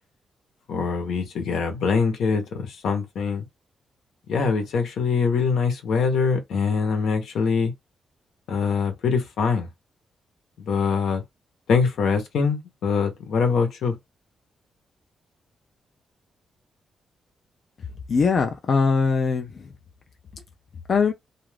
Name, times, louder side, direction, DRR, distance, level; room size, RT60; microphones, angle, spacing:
voice 1, 0.7-3.4 4.3-7.7 8.5-9.7 10.7-11.2 11.7-13.9, left 5 dB, 75° left, 0.9 m, -23 dB
voice 2, 18.1-19.7 20.9-21.1, left 5 dB, 40° left, 0.4 m, -21 dB
2.4 x 2.4 x 3.2 m
wide cardioid pair, 160°, 0 cm